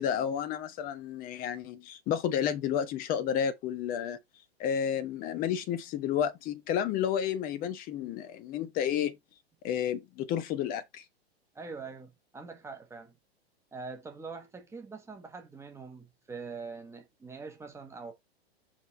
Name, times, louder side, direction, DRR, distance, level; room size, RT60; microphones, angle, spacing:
voice 1, 0.0-4.2 4.6-9.2 9.6-11.0, left 9 dB, 25° left, 1.1 m, -31 dB
voice 2, 11.5-13.2 13.7-18.1, right 4 dB, 10° right, 1.4 m, -43 dB
5.7 x 4.9 x 3.9 m
figure-of-eight pair, 100°, 32 cm